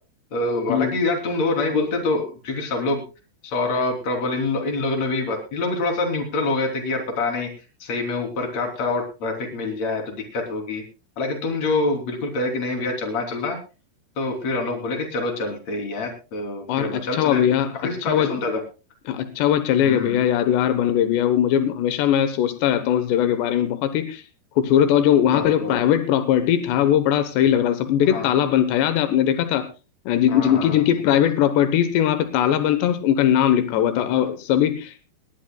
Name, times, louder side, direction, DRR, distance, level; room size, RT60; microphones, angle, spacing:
voice 1, 0.3-3.0 3.4-7.5 7.8-10.8 11.2-13.6 14.2-17.4 17.7-18.6 19.8-20.2 25.3-25.7 28.0-28.3 30.3-30.8 31.1-31.2 34.0-34.1, left 3 dB, 40° left, 3 dB, 4.2 m, -26 dB
voice 2, 16.7-17.7 18.1-18.3 19.1-24.2 24.6-29.7 30.1-35.1, left 10 dB, 85° left, 9 dB, 3.3 m, -20 dB
19.5 x 18.5 x 2.3 m, 0.33 s
omnidirectional pair, 4.8 m